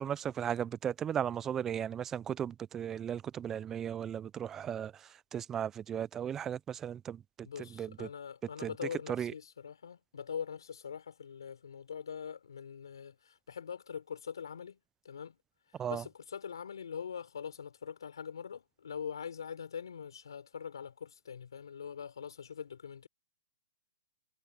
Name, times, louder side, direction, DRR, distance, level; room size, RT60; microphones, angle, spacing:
voice 1, 0.0-4.9 5.3-7.2 7.8-8.1 8.6-8.7 9.1-9.3 15.8-16.0, right 9 dB, 15° right, 0.4 m, -36 dB
voice 2, 7.4-14.8 15.0-15.4 15.9-23.1, left 7 dB, 85° left, 4.7 m, -43 dB
hypercardioid pair, 140°, 2 cm